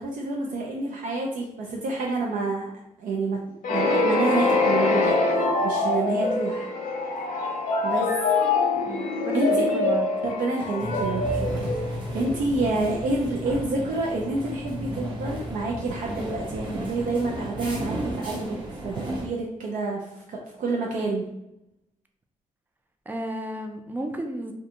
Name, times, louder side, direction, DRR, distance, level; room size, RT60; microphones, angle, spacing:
voice 1, 0.0-2.7 3.0-3.4 3.7-6.7 7.8-8.1 9.3-9.7 10.2-21.3, right 2 dB, 80° right, -2 dB, 0.5 m, -28 dB
sound 1, 3.6-12.4, left 3 dB, 75° left, 0.6 m, -24 dB
voice 2, 8.8-10.1 23.1-24.5, right 1 dB, 15° right, 4 dB, 0.4 m, -33 dB
sound 2, 10.8-19.3, equal, 35° right, 0.7 m, -33 dB
2.5 x 2.2 x 2.8 m, 0.83 s
cardioid pair, 110°, 14 cm